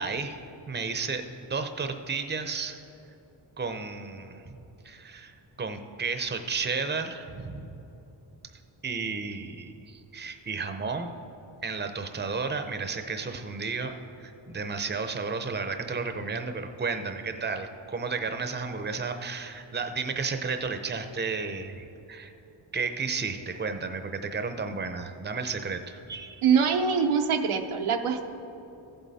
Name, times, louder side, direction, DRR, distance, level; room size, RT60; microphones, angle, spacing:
voice 1, 0.0-2.8 3.6-4.6 4.8-5.3 5.6-7.7 8.8-11.1 11.6-22.3 22.7-26.4, right 4 dB, 20° right, 7 dB, 0.7 m, -33 dB
voice 2, 26.4-28.3, right 6 dB, 85° right, 5 dB, 0.8 m, -24 dB
15.0 x 7.6 x 4.1 m, 3.0 s
wide cardioid pair, 85°, 48 cm